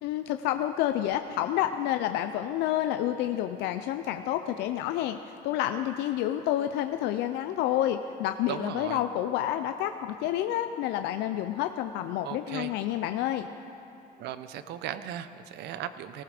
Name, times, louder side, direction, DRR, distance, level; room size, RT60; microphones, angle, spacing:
voice 1, 0.0-5.2 5.4-13.5, left 12 dB, 90° left, 8 dB, 0.5 m, -29 dB
voice 2, 8.5-9.0 12.2-12.7 14.2-16.2, right 10 dB, 80° right, 12 dB, 0.7 m, -37 dB
18.5 x 14.5 x 5.0 m, 2.9 s
cardioid pair, 110°, 17 cm